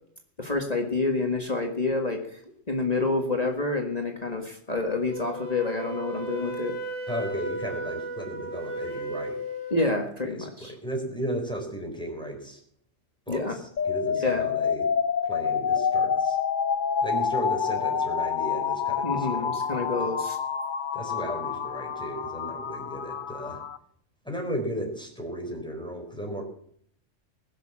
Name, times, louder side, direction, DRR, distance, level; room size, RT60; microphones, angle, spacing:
voice 1, 0.4-2.4 2.7-6.7 9.7-10.7 13.3-13.6 14.2-14.4 19.0-20.4, left 3 dB, 30° left, 2 dB, 1.8 m, -28 dB
Wind instrument woodwind instrument, 5.1-9.8, right 1 dB, 70° right, 3.6 m, -35 dB
voice 2, 7.1-9.4 10.3-12.6 13.3-14.9 15.2-16.4 17.0-20.1 20.9-23.6 24.2-26.4, right 1 dB, 5° left, 1 dB, 4.1 m, -35 dB
sound 1, 13.8-23.8, left 7 dB, 45° left, 0.8 m, -28 dB
20.5 x 6.9 x 7.3 m, 0.64 s
omnidirectional pair, 1.3 m